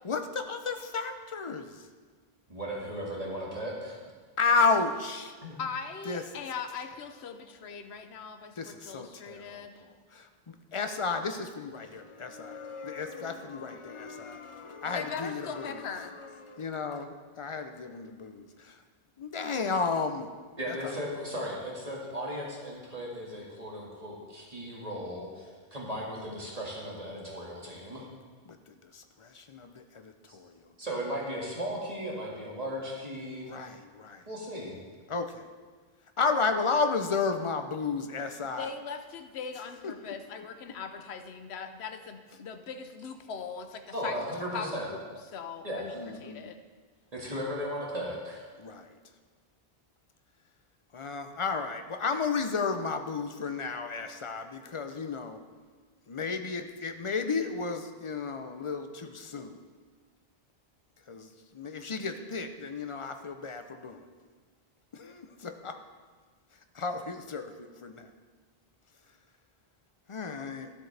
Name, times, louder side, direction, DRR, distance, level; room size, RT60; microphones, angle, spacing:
voice 1, 0.0-1.9 4.4-5.3 6.1-6.4 8.6-18.8 19.2-20.3 20.8-20.9 28.5-30.7 33.5-34.2 35.1-35.5 36.2-38.7 39.8-39.9 45.9-46.5 48.6-49.0 50.9-55.4 56.1-59.7 61.1-64.0 64.9-65.8 66.7-68.1 70.1-70.7, left 4 dB, 40° left, 7 dB, 0.5 m, -33 dB
voice 2, 2.5-4.0 5.4-5.5 20.6-28.0 30.3-30.4 30.8-33.5 34.3-34.8 43.9-44.9 45.6-46.0 47.1-48.5, equal, 40° right, -4 dB, 2.0 m, -36 dB
voice 3, 5.6-9.9 14.8-16.2 38.6-44.1 44.5-45.0 45.3-45.9 46.2-46.6, left 6 dB, 90° left, 8 dB, 1.0 m, -40 dB
13.0 x 7.8 x 3.3 m, 1.5 s
omnidirectional pair, 1.1 m